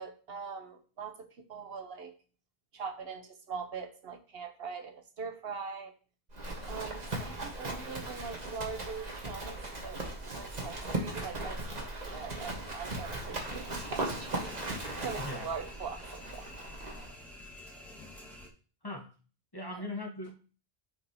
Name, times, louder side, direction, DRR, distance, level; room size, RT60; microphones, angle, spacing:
voice 1, 0.0-2.1 2.7-5.9 6.7-10.0 10.4-14.5 15.0-16.5 19.7-19.9, right 5 dB, 75° right, 1.2 m, -42 dB
Livestock farm animals working animals, 6.3-17.1, right 2 dB, 40° right, 1.4 m, -38 dB
sound 1, 13.3-18.5, left 1 dB, ahead, 1.5 m, -49 dB
voice 2, 15.2-15.5 18.8-19.1 19.5-20.4, left 2 dB, 25° left, 1.0 m, -39 dB
9.4 x 5.2 x 2.8 m
omnidirectional pair, 1.0 m